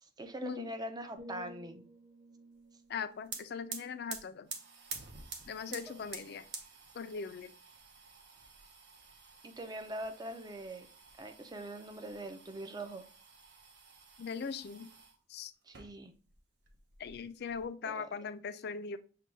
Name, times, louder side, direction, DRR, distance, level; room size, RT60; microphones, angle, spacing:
voice 1, 0.0-1.9 9.4-10.9 11.2-13.0 15.6-16.1 17.8-18.1, right 1 dB, 20° right, 7 dB, 0.5 m, -42 dB
sound 1, 1.2-5.1 5.5-5.8, equal, 85° right, 1.1 m, -55 dB
voice 2, 2.9-4.5 5.5-6.5 6.9-7.5 14.2-14.9 15.3-15.5 17.0-19.0, left 5 dB, 55° left, 11 dB, 0.4 m, -40 dB
sound 2, 2.9-3.0 3.2-15.2 15.6-16.4 16.6-17.6, right 5 dB, 60° right, 0.8 m, -49 dB
6.4 x 2.3 x 3.3 m, 0.37 s
head